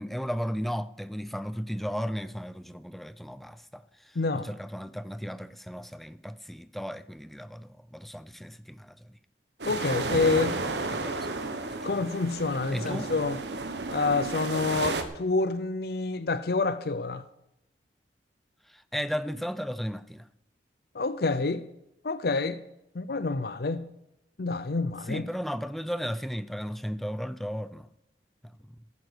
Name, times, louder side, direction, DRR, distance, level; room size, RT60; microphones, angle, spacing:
voice 1, 0.0-9.2 10.9-12.0 12.7-13.1 18.7-20.3 25.0-27.9 28.4-28.8, equal, ahead, 0.5 m, -35 dB
voice 2, 4.2-4.5 9.7-10.6 11.8-13.4 13.9-17.2 20.9-21.7 22.0-22.6 22.9-23.9 24.4-25.2, left 3 dB, 60° left, 0.6 m, -28 dB
sound 1, 9.6-15.0, right 3 dB, 75° right, 1.5 m, -32 dB
15.5 x 9.5 x 6.2 m
head